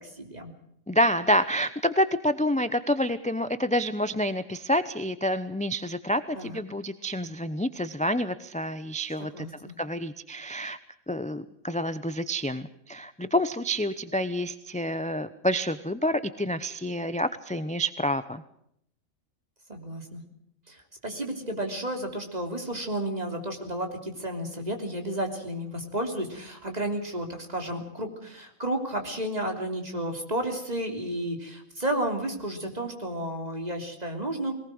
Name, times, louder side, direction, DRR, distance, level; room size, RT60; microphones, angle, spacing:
voice 1, 0.0-0.5 6.3-6.6 9.3-9.7 19.7-20.2 20.7-34.5, right 1 dB, 30° right, 4 dB, 3.4 m, -32 dB
voice 2, 0.9-9.5 9.8-10.8 11.1-18.4, equal, 10° left, 12 dB, 0.5 m, -28 dB
21.5 x 19.0 x 7.8 m, 0.72 s
omnidirectional pair, 1.4 m